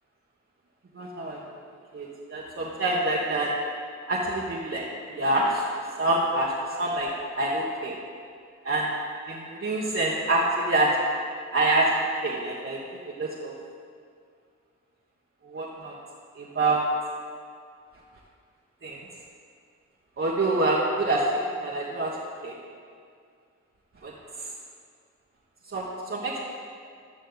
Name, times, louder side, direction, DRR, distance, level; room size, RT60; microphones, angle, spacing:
voice 1, 0.9-1.4 1.9-3.5 4.1-4.9 5.1-5.6 6.0-6.5 6.8-7.1 7.4-7.9 8.6-8.9 9.3-10.9 11.5-12.8 13.1-13.5 15.4-15.9 16.4-16.8 18.8-19.0 20.2-21.3 21.6-22.2 22.4-22.5 24.0-24.1 24.4-24.5 25.7-26.4, right 2 dB, 40° right, -4 dB, 1.3 m, -26 dB
14.0 x 6.2 x 4.0 m, 2.2 s
cardioid pair, 60°, 31 cm